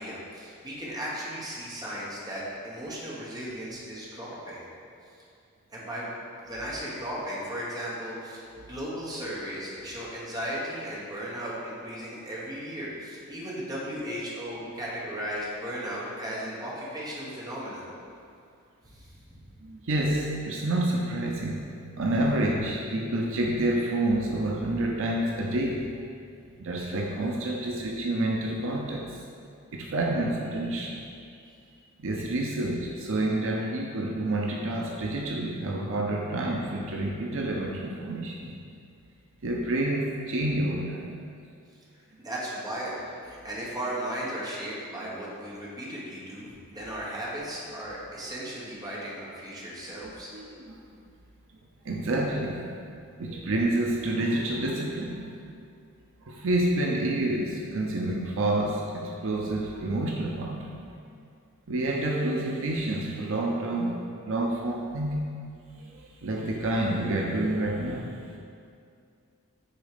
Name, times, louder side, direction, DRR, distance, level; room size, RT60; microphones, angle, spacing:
voice 1, 0.0-4.7 5.7-6.1 6.5-17.9 18.8-19.1 42.2-50.3, equal, 20° right, -6 dB, 1.3 m, -36 dB
voice 2, 19.6-21.7 22.0-25.9 26.6-31.0 32.0-38.6 39.4-41.2 42.1-42.2 50.3-51.0 51.8-52.7 53.2-55.5 56.2-60.9 61.7-65.3 65.8-68.2, right 1 dB, 65° right, -1 dB, 0.6 m, -29 dB
6.7 x 4.1 x 5.1 m, 2.4 s
head